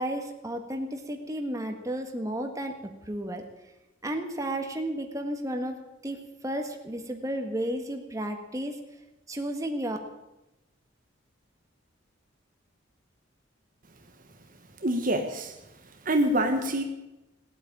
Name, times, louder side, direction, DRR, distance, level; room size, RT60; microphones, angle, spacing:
voice 1, 0.0-2.7 3.0-3.4 4.0-8.7 9.3-10.0, right 1 dB, 15° right, 4 dB, 1.7 m, -33 dB
voice 2, 14.8-15.5 16.0-16.8, right 1 dB, 45° right, 5 dB, 1.3 m, -25 dB
18.5 x 8.8 x 8.7 m, 0.97 s
head